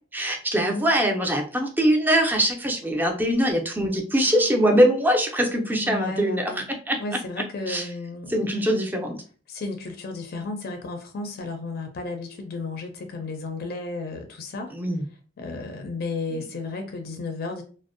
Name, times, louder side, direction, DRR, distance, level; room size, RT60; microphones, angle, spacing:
voice 1, 0.1-7.0 7.7-7.9 8.3-9.2 14.7-15.0, equal, 10° right, 2 dB, 0.4 m, -22 dB
voice 2, 4.2-4.7 5.8-6.6 7.0-8.5 9.5-14.7 15.4-17.6, left 3 dB, 55° left, 5 dB, 0.4 m, -33 dB
2.5 x 2.0 x 2.5 m, 0.39 s
head